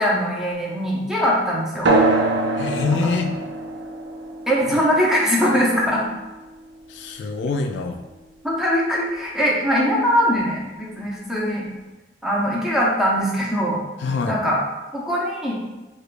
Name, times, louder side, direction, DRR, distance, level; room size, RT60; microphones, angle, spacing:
voice 1, 0.0-1.9 4.5-6.0 8.4-11.6 12.2-13.8 14.3-14.6 14.9-15.5, equal, ahead, -5 dB, 0.6 m, -21 dB
sound 1, 1.8-6.9, right 2 dB, 75° right, 0.5 m, -24 dB
voice 2, 2.5-3.4 6.9-8.0 14.0-14.4, left 4 dB, 75° left, 5 dB, 0.3 m, -25 dB
4.7 x 2.2 x 2.4 m, 1.1 s
head